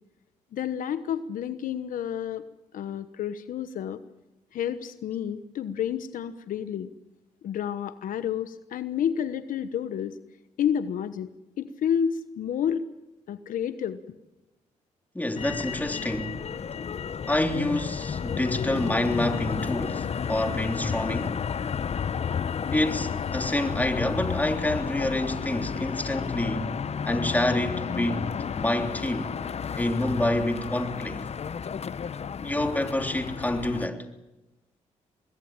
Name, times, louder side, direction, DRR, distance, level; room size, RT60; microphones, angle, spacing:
voice 1, 0.5-2.4 2.7-4.0 4.5-6.9 7.4-10.1 10.6-11.3 11.6-12.8 13.3-14.0, left 8 dB, 80° left, 1.1 m, -30 dB
voice 2, 15.1-16.4 17.3-21.4 22.7-26.8 27.1-29.3 29.8-31.3 32.4-34.0, left 1 dB, 10° left, 3.3 m, -27 dB
Motor vehicle (road), 15.4-33.9, left 7 dB, 50° left, 0.9 m, -32 dB
25.0 x 20.5 x 8.9 m
cardioid pair, 65°, 14 cm